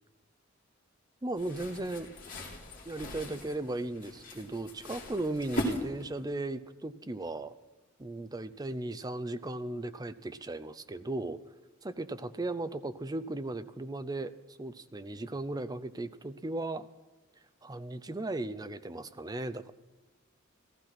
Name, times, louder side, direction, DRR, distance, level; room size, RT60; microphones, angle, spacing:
voice 1, 1.2-2.1 2.9-7.5 8.0-11.4 11.8-14.3 14.6-16.9 17.6-19.7, right 2 dB, 20° right, 13 dB, 0.5 m, -36 dB
sound 1, 1.4-6.3, equal, 45° left, 3.0 m, -39 dB
15.0 x 14.0 x 6.0 m, 1.2 s
head